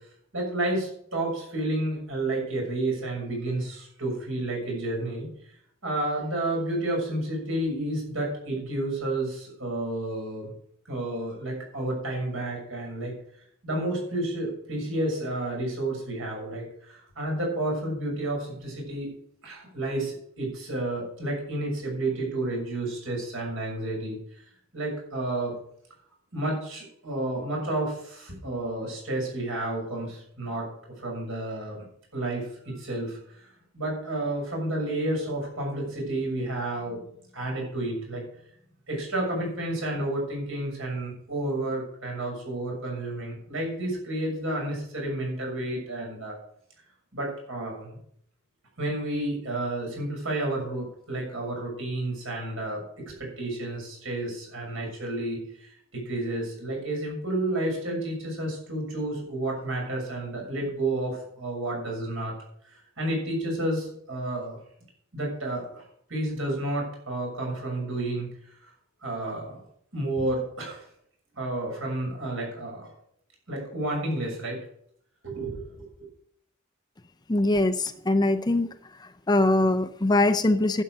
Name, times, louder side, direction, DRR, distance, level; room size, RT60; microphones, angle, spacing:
voice 1, 0.3-5.6 5.8-10.5 10.9-13.1 13.6-19.1 19.4-25.5 26.3-30.7 31.0-31.9 32.1-33.5 33.7-38.2 38.9-46.3 47.1-48.0 48.8-62.3 62.6-64.6 65.1-65.8 66.1-68.7 69.0-69.6 69.9-70.9 71.3-72.9 73.5-74.6 75.2-76.1, right 1 dB, 65° right, -1 dB, 6.6 m, -31 dB
voice 2, 77.3-78.7 79.0-80.8, left 2 dB, 20° left, 10 dB, 0.5 m, -22 dB
11.5 x 8.2 x 6.5 m, 0.67 s
head